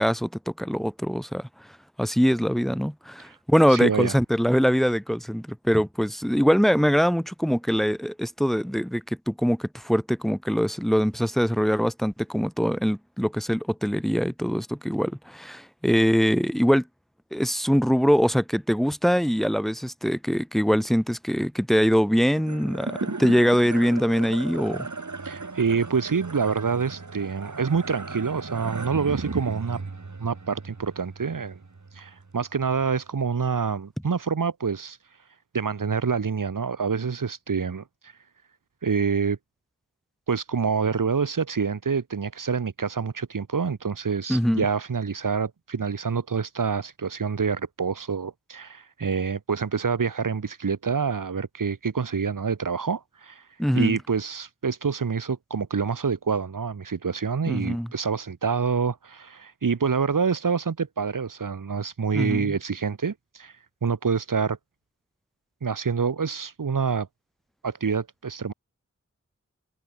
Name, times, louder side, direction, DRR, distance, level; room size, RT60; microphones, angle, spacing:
voice 1, 0.0-1.5 2.0-16.8 17.3-24.9 44.3-44.6 53.6-54.0 57.5-57.9 62.1-62.6, equal, ahead, 2.4 m, -23 dB
voice 2, 3.7-4.2 25.2-29.8 30.2-31.6 31.9-35.0 35.5-38.1 38.8-39.4 40.3-53.4 53.7-63.5 63.8-64.6 65.6-67.1 67.6-68.5, right 5 dB, 90° right, 2.0 m, -27 dB
sound 1, 22.4-32.9, right 3 dB, 65° right, 6.3 m, -36 dB
wide cardioid pair, 45°, 31 cm